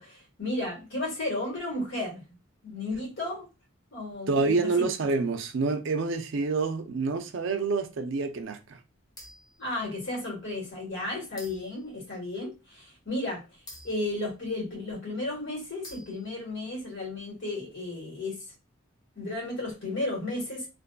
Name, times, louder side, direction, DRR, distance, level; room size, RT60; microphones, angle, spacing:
voice 1, 0.0-2.4 2.6-3.5 3.9-4.9 9.6-18.4 19.1-20.7, left 2 dB, 60° left, 1.3 m, -34 dB
voice 2, 4.3-8.8, right 3 dB, 60° right, 0.4 m, -27 dB
sound 1, 9.2-9.6 10.3-10.4 11.4-11.9 13.7-14.8 15.8-16.5, left 1 dB, 20° left, 0.6 m, -48 dB
2.5 x 2.4 x 2.2 m
head